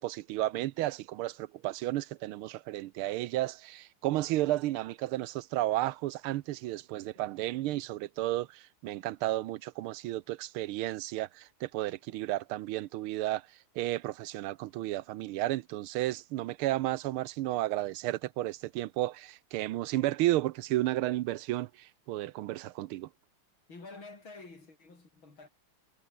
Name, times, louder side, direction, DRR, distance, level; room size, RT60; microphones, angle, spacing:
voice 1, 0.0-13.4 13.7-23.1, right 16 dB, 85° right, 1.6 m, -32 dB
voice 2, 23.7-25.5, left 3 dB, 70° left, 6.3 m, -49 dB
omnidirectional pair, 2.3 m